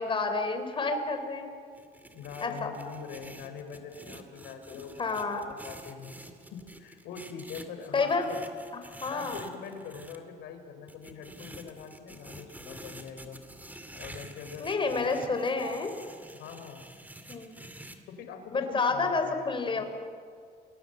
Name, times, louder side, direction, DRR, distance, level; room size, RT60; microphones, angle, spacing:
voice 1, 0.0-1.6 2.4-2.7 4.7-5.5 7.9-8.3 9.0-9.4 14.6-15.9 17.3-17.6 18.5-19.8, left 4 dB, 30° left, 7 dB, 3.9 m, -29 dB
sound 1, 1.7-10.2 10.9-18.0, right 1 dB, 10° right, 2.4 m, -48 dB
voice 2, 2.1-6.1 6.5-8.5 9.1-13.4 13.9-15.4 16.4-16.8 18.1-19.8, left 6 dB, 85° left, 7 dB, 4.1 m, -44 dB
29.5 x 20.5 x 8.0 m, 2.1 s
cardioid pair, 110°, 17 cm